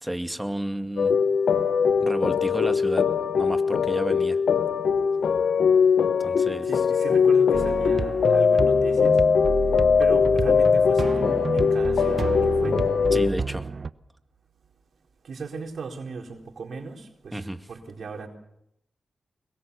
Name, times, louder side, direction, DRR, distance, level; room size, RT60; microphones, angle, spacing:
voice 1, 0.0-1.1 2.0-3.1 3.4-4.4 6.2-6.7 13.1-13.7 17.3-17.6, right 1 dB, 10° right, 8 dB, 2.2 m, -31 dB
sound 1, 1.0-13.3, left 6 dB, 75° left, 1.1 m, -21 dB
voice 2, 6.6-9.2 10.0-12.8 15.2-18.3, right 4 dB, 75° right, 3 dB, 4.3 m, -37 dB
sound 2, 7.5-13.9, right 4 dB, 55° right, 0.9 m, -30 dB
24.5 x 22.0 x 7.0 m, 0.80 s
cardioid pair, 55°, 0 cm